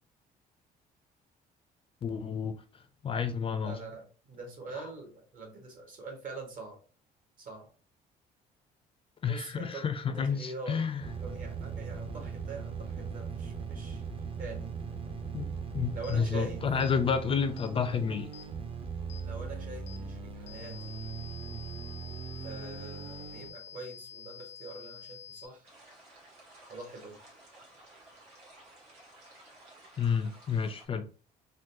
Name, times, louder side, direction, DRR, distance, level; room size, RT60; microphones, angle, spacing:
voice 1, 2.0-2.6 3.0-3.8 9.2-11.0 15.3-18.3 30.0-31.1, left 6 dB, 35° left, 0.4 m, -30 dB
voice 2, 3.6-6.8 7.4-7.7 9.2-9.8 10.1-14.0 14.4-14.7 15.9-16.6 19.2-20.9 22.4-25.7 26.7-27.2, right 3 dB, 55° right, 1.3 m, -44 dB
sound 1, 11.0-23.5, right 5 dB, 30° right, 0.7 m, -39 dB
sound 2, 16.0-16.2 16.8-17.0 17.6-17.7 18.3-18.5 19.1-19.3 19.9-20.0 20.5-25.5, left 7 dB, 85° left, 0.5 m, -48 dB
sound 3, 25.6-30.9, right 1 dB, 80° right, 1.5 m, -55 dB
3.8 x 2.2 x 2.6 m
cardioid pair, 110°, 17 cm